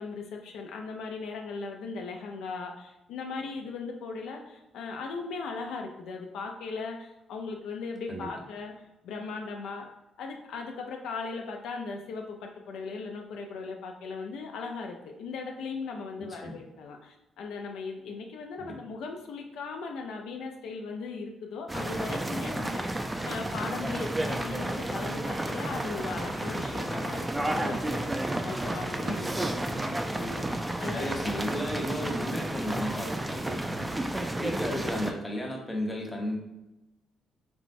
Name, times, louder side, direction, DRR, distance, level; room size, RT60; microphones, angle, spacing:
voice 1, 0.0-8.7 9.0-9.9 10.2-31.3 34.7-34.8, left 4 dB, 85° left, 2 dB, 0.4 m, -38 dB
voice 2, 16.2-16.5 18.6-18.8 29.1-29.5 30.9-34.0 34.4-36.4, equal, 15° left, -1 dB, 0.8 m, -34 dB
sound 1, 21.7-35.1, right 1 dB, 15° right, 0.3 m, -32 dB
4.3 x 2.0 x 2.5 m, 0.96 s
cardioid pair, 90°, 0 cm